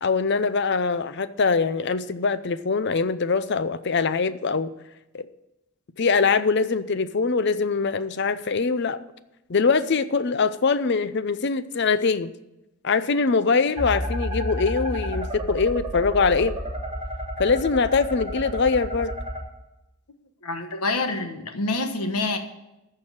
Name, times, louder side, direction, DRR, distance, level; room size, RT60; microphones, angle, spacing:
voice 1, 0.0-4.7 5.1-5.3 6.0-9.0 9.5-12.3 12.8-16.6 17.4-19.2, left 4 dB, 50° left, 0.5 m, -23 dB
sound 1, 13.8-19.4, equal, 20° right, 2.2 m, -31 dB
voice 2, 20.4-22.4, left 2 dB, 90° left, 1.3 m, -27 dB
13.5 x 4.7 x 8.8 m
head